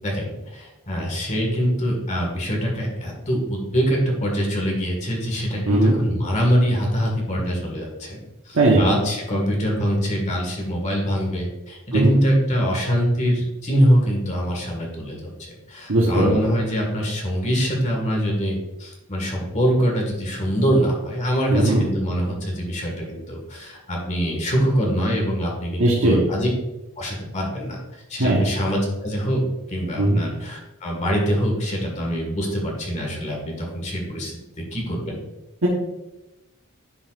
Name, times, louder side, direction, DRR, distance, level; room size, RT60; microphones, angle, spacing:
voice 1, 0.0-8.2 8.5-15.3 15.7-26.5 27.0-27.8 28.1-29.4 29.7-34.3 34.7-35.2, equal, 35° left, -1 dB, 1.8 m, -24 dB
voice 2, 15.9-16.3 21.5-21.9 25.8-26.3 28.2-28.4 30.0-30.2 35.6-35.7, right 2 dB, 70° right, -4 dB, 1.3 m, -18 dB
10.0 x 5.5 x 2.6 m, 0.98 s
head